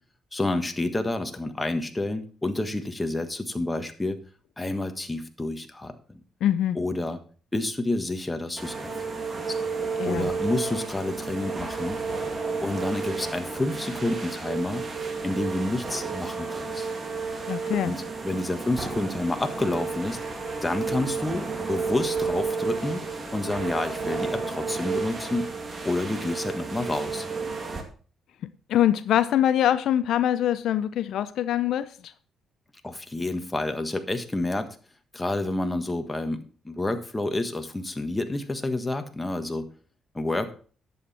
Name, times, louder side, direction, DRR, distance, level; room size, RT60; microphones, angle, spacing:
voice 1, 0.3-4.2 4.6-6.2 6.7-7.2 7.5-9.2 10.0-12.0 12.6-14.8 15.2-16.9 17.8-20.2 20.6-23.0 23.3-25.5 25.8-27.3 32.8-34.8 35.1-39.7 40.1-40.5, left 2 dB, 15° left, 1.5 m, -29 dB
voice 2, 6.4-6.8 10.0-10.3 17.5-17.9 28.7-32.1, left 11 dB, 75° left, 0.5 m, -24 dB
sound 1, 8.6-27.8, right 4 dB, 35° right, 2.2 m, -32 dB
11.0 x 7.9 x 4.2 m
cardioid pair, 90°, 0 cm